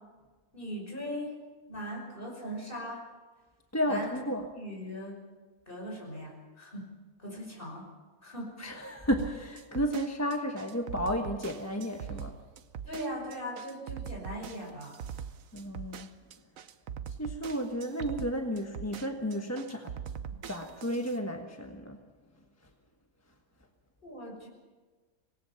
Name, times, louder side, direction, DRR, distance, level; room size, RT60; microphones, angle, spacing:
voice 1, 0.5-1.3 1.7-3.0 3.9-4.2 4.5-5.2 5.7-6.9 7.2-7.9 8.2-8.5 12.8-14.9 24.0-24.5, equal, 35° left, 0 dB, 5.9 m, -39 dB
voice 2, 3.7-4.4 8.6-12.4 15.5-16.1 17.2-19.9 20.5-22.0, equal, 10° left, 3 dB, 1.2 m, -32 dB
sound 1, 9.2-21.2, right 8 dB, 70° right, 1.2 m, -42 dB
25.5 x 19.0 x 5.7 m, 1.4 s
omnidirectional pair, 1.5 m